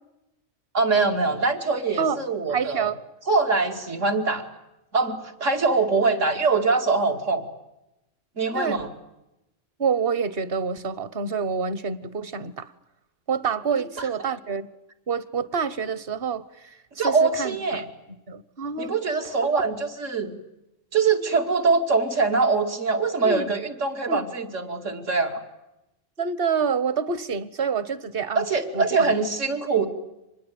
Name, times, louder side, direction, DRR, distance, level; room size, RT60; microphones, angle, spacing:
voice 1, 0.7-2.9 3.3-4.4 4.9-7.4 8.4-8.9 14.0-14.1 17.0-17.8 18.8-20.3 20.9-25.4 28.3-29.9, right 4 dB, 85° right, 4 dB, 2.8 m, -23 dB
voice 2, 2.5-3.0 8.5-8.8 9.8-12.7 13.3-14.7 15.1-17.8 18.3-18.9 19.5-19.8 23.2-23.5 24.1-24.3 26.2-28.4 28.7-29.1, right 6 dB, 50° right, 16 dB, 1.2 m, -27 dB
25.5 x 20.5 x 9.3 m, 0.93 s
omnidirectional pair, 1.3 m